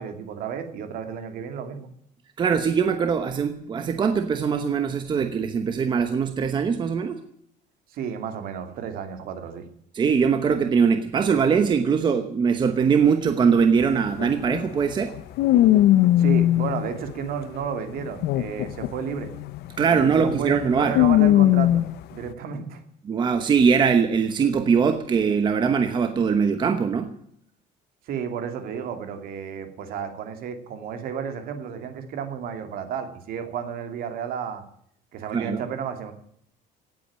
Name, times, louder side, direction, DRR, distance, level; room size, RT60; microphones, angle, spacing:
voice 1, 0.0-1.9 7.9-9.7 16.2-19.3 19.9-21.8 22.1-22.8 28.1-34.6 35.1-36.1, right 7 dB, 60° right, 6 dB, 2.6 m, -32 dB
voice 2, 2.4-7.2 9.9-15.1 19.8-20.9 23.1-27.1 35.3-35.6, right 6 dB, 25° right, 8 dB, 1.0 m, -21 dB
sound 1, 13.8-13.9 14.2-17.4 18.0-22.0, left 13 dB, 70° left, 0.8 m, -20 dB
17.5 x 8.6 x 8.6 m, 0.68 s
cardioid pair, 175°, 17 cm